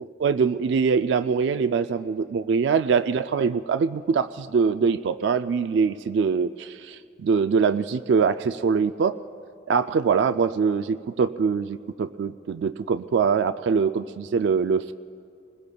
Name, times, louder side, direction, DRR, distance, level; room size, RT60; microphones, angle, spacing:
voice 1, 0.0-9.2 9.7-14.9, right 5 dB, 85° right, 10 dB, 0.3 m, -23 dB
25.5 x 20.5 x 2.3 m, 2.3 s
head